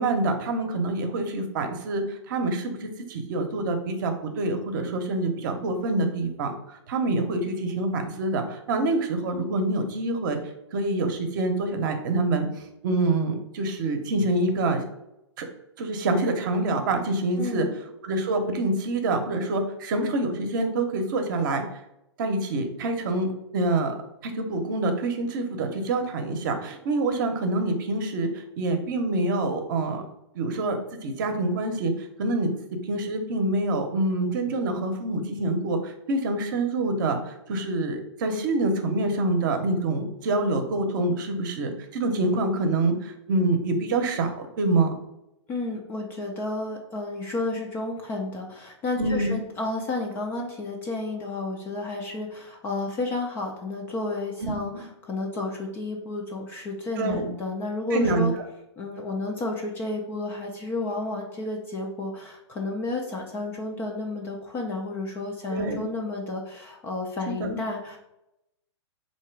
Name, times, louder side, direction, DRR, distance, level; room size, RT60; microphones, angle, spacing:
voice 1, 0.0-10.4 10.7-12.5 12.8-14.8 15.4-15.5 15.8-17.7 18.0-21.6 22.2-23.9 24.2-28.3 28.6-30.0 30.3-31.9 32.2-32.5 32.9-44.9 49.0-49.4 54.4-54.6 57.0-57.3 57.9-58.3 65.5-65.8 67.4-67.6, right 2 dB, 45° right, 6 dB, 0.8 m, -26 dB
voice 2, 17.4-17.7 45.5-58.3 58.8-68.0, left 2 dB, 15° left, 0 dB, 0.4 m, -31 dB
3.8 x 2.8 x 4.5 m, 0.86 s
hypercardioid pair, 155°, 15 cm